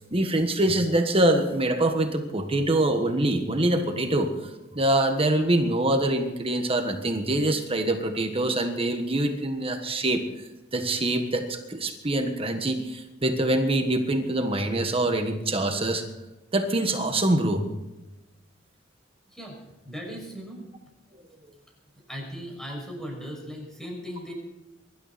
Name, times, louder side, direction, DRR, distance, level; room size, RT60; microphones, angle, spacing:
voice 1, 0.1-10.2 10.7-16.0 16.5-17.7, right 1 dB, 30° right, 5 dB, 1.5 m, -24 dB
voice 2, 19.8-20.7 22.1-24.3, equal, 5° left, -1 dB, 6.1 m, -37 dB
23.0 x 12.5 x 4.3 m, 1.0 s
head